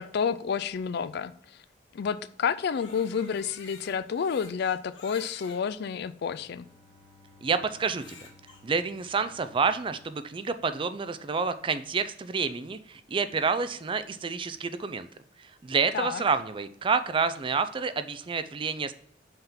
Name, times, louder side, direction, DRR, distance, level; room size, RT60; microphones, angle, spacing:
voice 1, 0.0-1.6 1.9-6.6 15.9-16.2, left 6 dB, 60° left, 0.4 m, -30 dB
Crying sobbing, 2.5-5.6 6.3-6.4 7.8-8.6, left 4 dB, 90° left, 1.7 m, -50 dB
Bowed string instrument, 6.2-11.4, left 3 dB, 85° right, 1.8 m, -59 dB
voice 2, 7.4-8.2 8.6-15.1 15.4-18.9, right 5 dB, 30° right, 0.4 m, -29 dB
5.6 x 3.6 x 5.6 m
head